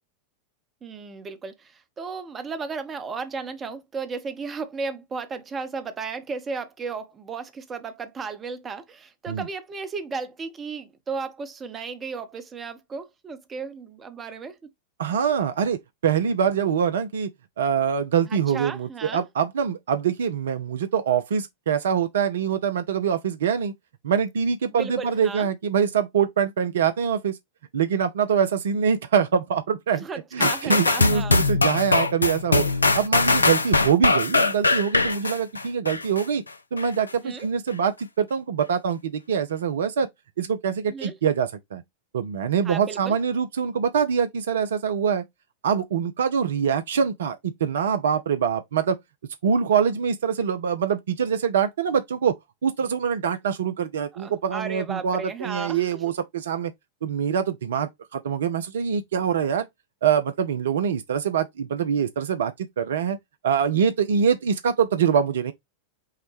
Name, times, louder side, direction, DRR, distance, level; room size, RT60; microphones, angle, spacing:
voice 1, 0.8-14.6 18.3-19.3 24.8-25.5 30.0-31.4 37.2-37.5 40.9-41.2 42.6-43.2 54.1-56.1, right 4 dB, 20° right, 0.8 m, -34 dB
voice 2, 15.0-17.3 17.6-23.7 24.0-27.4 27.7-30.0 30.3-32.7 32.9-36.4 36.7-40.1 40.4-41.8 42.1-45.2 45.6-49.0 49.4-52.3 52.6-56.7 57.0-59.7 60.0-63.2 63.4-65.5, right 7 dB, 65° right, 0.4 m, -24 dB
sound 1, 30.4-36.2 36.8-36.9, left 3 dB, 80° left, 0.4 m, -21 dB
5.6 x 2.1 x 3.1 m
figure-of-eight pair, 90°, 0 cm